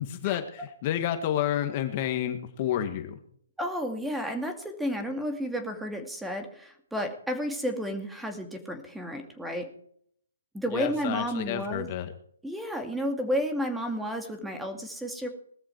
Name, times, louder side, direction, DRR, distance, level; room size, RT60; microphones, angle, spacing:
voice 1, 0.0-3.1 10.7-12.1, left 11 dB, 35° left, 8 dB, 1.9 m, -30 dB
voice 2, 3.6-9.7 10.5-11.9 12.4-15.3, equal, 5° right, 5 dB, 2.3 m, -32 dB
19.0 x 13.5 x 4.6 m, 0.65 s
hypercardioid pair, 145°, 0 cm